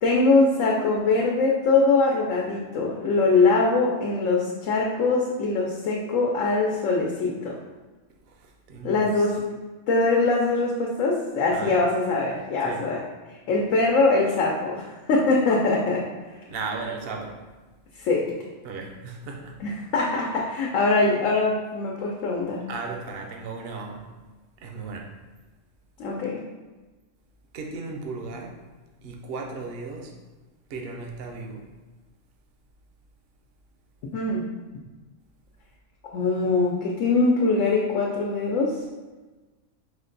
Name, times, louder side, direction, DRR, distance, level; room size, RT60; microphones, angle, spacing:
voice 1, 0.0-7.5 8.8-9.4 9.9-13.0 13.5-16.0 17.9-18.3 19.6-22.7 26.0-26.4 34.1-34.4 36.0-38.8, left 3 dB, 85° left, -2 dB, 1.0 m, -22 dB
voice 2, 8.1-9.3 11.5-11.8 12.6-12.9 16.5-17.5 18.6-19.6 22.7-24.1 24.6-25.2 27.5-28.7 29.0-30.2 30.7-31.7, right 4 dB, 60° right, 2 dB, 0.8 m, -36 dB
5.0 x 2.2 x 3.9 m, 1.3 s
omnidirectional pair, 1.3 m